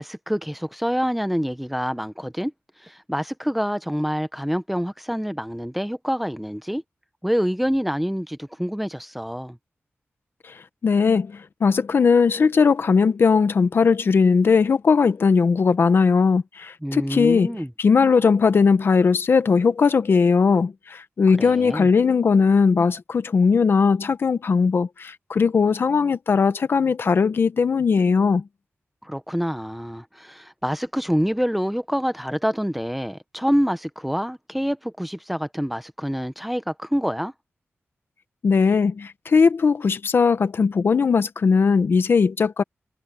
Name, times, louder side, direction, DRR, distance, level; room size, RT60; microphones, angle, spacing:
voice 1, 0.0-2.5 2.8-6.8 7.2-9.6 16.8-17.7 21.4-21.9 29.0-37.3, equal, ahead, 0.8 m, -26 dB
voice 2, 10.8-17.5 17.8-28.4 38.4-42.6, left 5 dB, 55° left, 1.0 m, -19 dB
wide cardioid pair, 170°, 5 cm